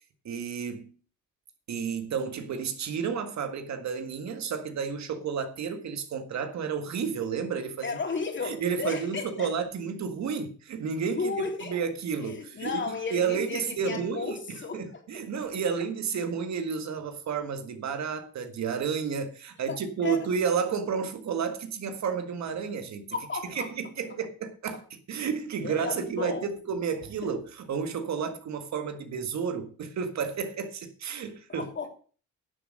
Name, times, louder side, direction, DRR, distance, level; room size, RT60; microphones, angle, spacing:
voice 1, 0.3-0.9 1.7-7.9 8.4-11.3 11.6-23.1 23.6-31.7, right 6 dB, 65° right, 1.8 m, -31 dB
voice 2, 7.8-9.5 11.2-11.7 12.2-15.0 19.7-20.2 23.1-23.7 25.6-26.5 27.2-27.3 31.5-31.9, left 4 dB, 40° left, 3.2 m, -34 dB
11.0 x 7.3 x 6.5 m
cardioid pair, 90°, 30 cm